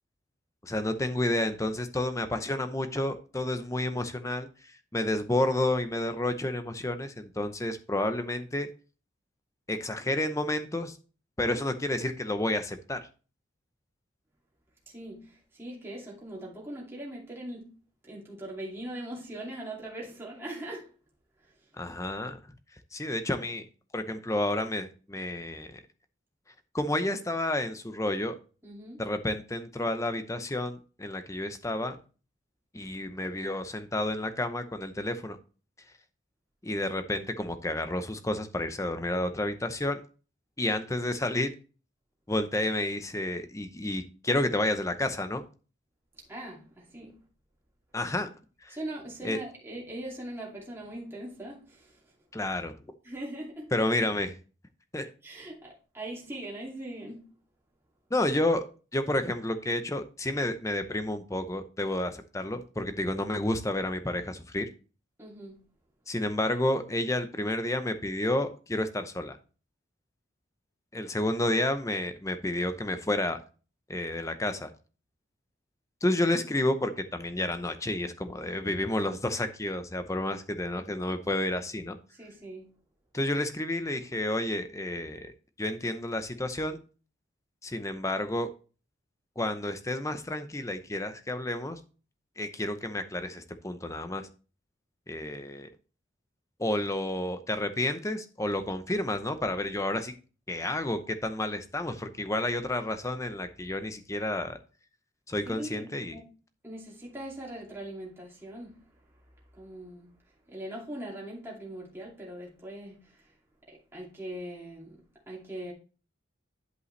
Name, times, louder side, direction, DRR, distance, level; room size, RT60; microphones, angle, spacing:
voice 1, 0.6-8.7 9.7-11.0 11.4-13.0 21.8-22.4 22.9-23.6 23.9-25.8 26.7-28.3 29.0-32.0 32.7-35.4 36.6-40.0 40.6-41.5 42.3-45.4 47.9-48.3 48.6-48.8 49.2-49.4 52.3-52.8 53.7-54.4 54.9-55.1 58.1-58.6 58.9-64.7 66.1-69.4 70.9-73.4 73.9-74.7 76.0-82.0 83.1-85.3 85.6-86.8 87.6-88.5 89.4-91.8 92.4-94.3 95.1-95.7 96.6-100.1 100.5-104.6 105.3-106.1, left 1 dB, 15° left, 0.7 m, -30 dB
voice 2, 14.9-17.7 18.0-20.9 21.4-21.5 28.6-29.0 46.1-47.2 48.7-52.1 53.0-53.7 55.2-57.2 65.2-65.6 82.1-82.7 105.5-106.2 106.6-108.9 109.5-110.1 110.5-113.3 113.7-115.7, right 1 dB, 10° right, 2.4 m, -41 dB
11.0 x 5.4 x 3.2 m
head